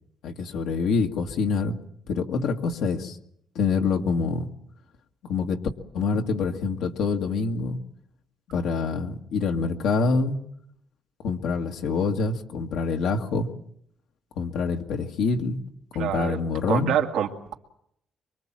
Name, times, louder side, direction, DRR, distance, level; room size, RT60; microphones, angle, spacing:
voice 1, 0.2-1.7 2.1-3.2 3.6-4.5 5.3-5.6 5.9-7.8 8.5-10.4 11.2-13.5 14.4-15.6 15.9-16.9, left 4 dB, 85° left, 3 dB, 1.8 m, -26 dB
voice 2, 16.0-16.4 16.7-17.5, right 9 dB, 90° right, 3 dB, 2.3 m, -26 dB
24.5 x 23.5 x 7.5 m, 0.73 s
cardioid pair, 90°, 0 cm